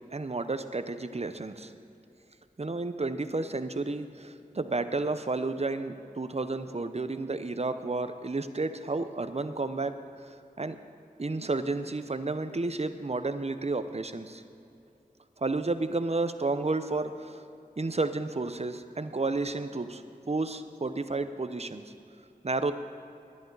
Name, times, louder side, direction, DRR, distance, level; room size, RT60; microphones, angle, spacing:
voice 1, 0.1-1.7 2.6-9.9 10.6-10.8 11.2-14.4 15.4-17.4 17.8-20.0 20.3-21.8 22.4-22.7, right 3 dB, 45° right, 10 dB, 0.8 m, -31 dB
19.5 x 11.0 x 4.0 m, 2.7 s
wide cardioid pair, 40°, 16 cm